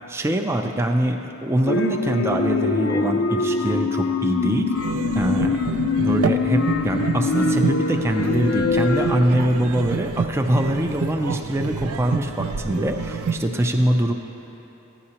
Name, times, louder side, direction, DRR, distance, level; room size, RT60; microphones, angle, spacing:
voice 1, 0.1-4.7 5.2-5.7 6.0-14.1, right 1 dB, 10° right, 3 dB, 0.4 m, -23 dB
sound 1, 1.7-9.3, left 4 dB, 65° left, 0.4 m, -23 dB
sound 2, 4.7-13.4, right 5 dB, 85° right, 0.4 m, -28 dB
15.0 x 9.7 x 2.9 m, 3.0 s
head